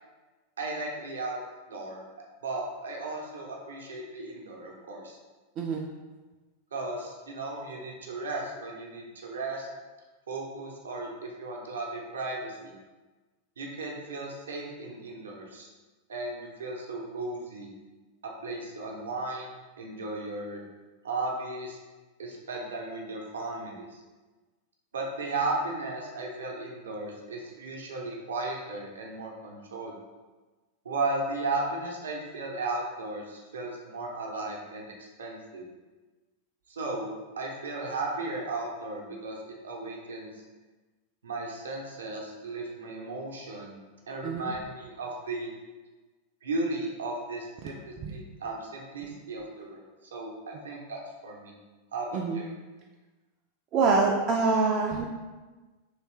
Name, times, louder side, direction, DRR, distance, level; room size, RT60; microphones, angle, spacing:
voice 1, 0.6-1.4 1.7-2.0 2.4-5.2 6.7-9.7 10.3-12.7 13.6-15.7 16.1-17.7 18.4-19.5 19.8-20.6 21.0-21.8 22.2-24.0 24.9-29.9 30.8-35.6 36.7-40.3 41.2-43.8 44.1-45.5 46.4-49.8 50.1-51.5 51.9-52.5, right 2 dB, 65° right, -1 dB, 0.7 m, -35 dB
voice 2, 5.6-5.9 44.2-44.5 47.6-47.7 48.0-48.2 52.1-52.4 53.7-55.1, right 4 dB, 35° right, -1 dB, 0.3 m, -25 dB
3.2 x 3.0 x 3.2 m, 1.3 s
figure-of-eight pair, 90°, 0 cm